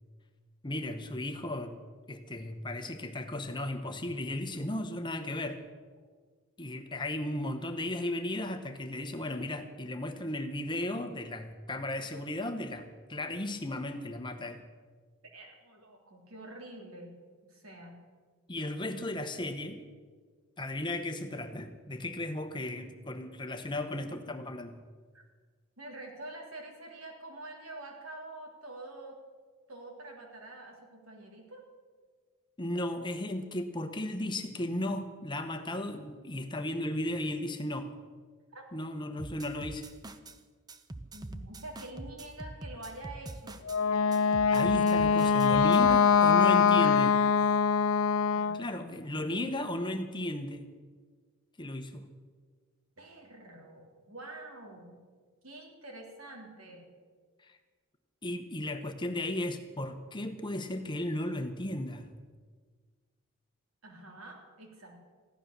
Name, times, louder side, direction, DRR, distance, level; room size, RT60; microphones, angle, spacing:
voice 1, 0.6-1.8 2.1-5.6 6.6-14.6 18.5-19.8 20.6-24.8 32.6-37.9 38.7-39.9 44.5-47.1 48.5-50.6 51.6-52.1 57.4-57.6 58.2-62.1, left 1 dB, 20° left, 7 dB, 0.9 m, -35 dB
voice 2, 15.3-17.1 17.4-18.0 25.1-25.2 25.8-29.2 29.7-31.6 38.5-38.6 41.1-43.6 45.5-47.3 48.3-49.4 53.0-55.0 55.4-56.9 63.8-65.0, right 2 dB, 80° right, 0 dB, 3.6 m, -46 dB
sound 1, 39.2-40.4 40.7-43.8 44.1-46.0, right 2 dB, 20° right, 0.6 m, -44 dB
Wind instrument woodwind instrument, 43.7-48.6, left 6 dB, 70° left, 0.5 m, -23 dB
15.5 x 11.5 x 6.8 m, 1.5 s
head